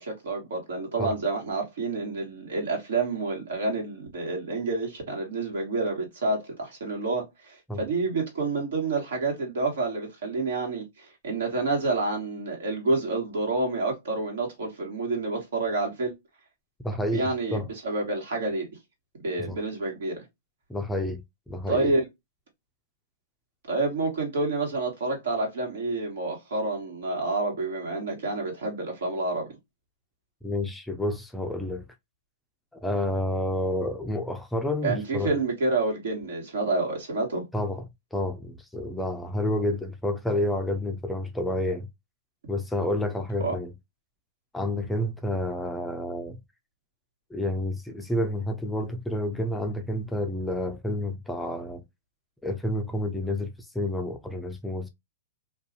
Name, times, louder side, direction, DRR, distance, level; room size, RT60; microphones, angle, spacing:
voice 1, 0.0-16.1 17.1-18.7 19.2-20.1 21.7-22.1 23.7-29.5 34.8-37.4 43.4-43.5, right 3 dB, 75° right, 1.4 m, -28 dB
voice 2, 16.8-17.7 19.4-19.6 20.7-21.9 30.4-31.8 32.8-35.3 37.5-37.9 38.1-41.9 42.5-43.7 44.5-46.4 47.3-51.8 52.4-54.9, left 1 dB, 5° left, 0.3 m, -29 dB
2.5 x 2.3 x 2.6 m
hypercardioid pair, 135°, 0 cm